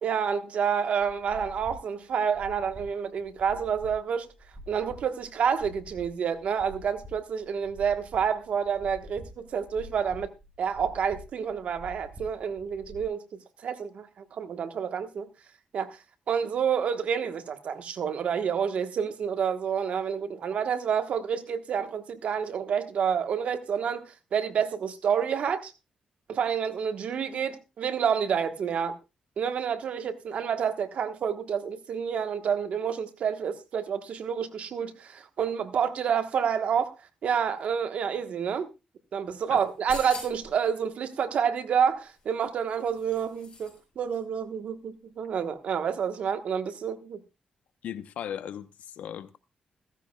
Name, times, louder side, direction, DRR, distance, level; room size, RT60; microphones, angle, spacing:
voice 1, 0.0-4.3 4.7-10.3 10.6-13.2 13.6-15.3 15.7-16.0 16.3-25.7 26.3-29.0 29.4-36.9 37.2-38.7 39.1-47.2, right 7 dB, 65° right, 1.3 m, -29 dB
sound 1, 1.0-13.0, equal, 20° right, 5.7 m, -47 dB
sound 2, 39.6-40.6 42.1-43.8 44.1-44.2, left 4 dB, 40° left, 7.2 m, -44 dB
voice 2, 47.8-49.4, left 9 dB, 85° left, 0.8 m, -37 dB
15.5 x 15.0 x 2.3 m
cardioid pair, 115°, 2 cm